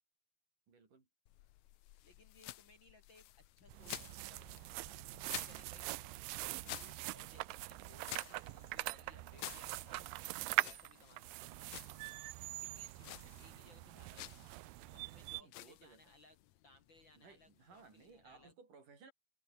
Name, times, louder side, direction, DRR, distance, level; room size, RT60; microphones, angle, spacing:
voice 1, 0.7-1.1 15.4-16.0 17.1-19.1, right 5 dB, 65° right, 6.7 m, -60 dB
sound 1, 1.3-18.5, left 15 dB, 70° left, 1.8 m, -53 dB
voice 2, 2.0-4.5 4.8-5.9 6.2-6.3 6.6-11.9 12.6-14.4 14.9-16.4 16.6-18.5, left 2 dB, 35° left, 2.7 m, -65 dB
sound 2, 3.7-15.4, right 21 dB, 80° right, 2.2 m, -43 dB
sound 3, 8.8-14.5, right 2 dB, 30° right, 7.2 m, -72 dB
omnidirectional pair, 4.0 m